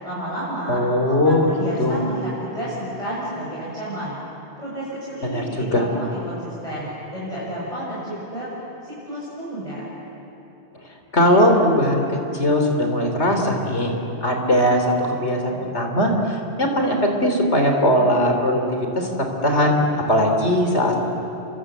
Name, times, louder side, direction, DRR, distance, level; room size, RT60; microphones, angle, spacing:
voice 1, 0.0-0.8 1.1-4.2 4.6-8.5 8.8-9.9, right 1 dB, 30° left, -9 dB, 7.6 m, -31 dB
voice 2, 0.7-1.4 1.8-2.0 5.2-5.8 11.1-13.9 14.2-16.1 16.6-18.6 19.0-19.1 19.4-19.8 20.1-20.9, equal, 75° left, 3 dB, 3.8 m, -19 dB
29.0 x 24.5 x 8.1 m, 3.0 s
omnidirectional pair, 1.2 m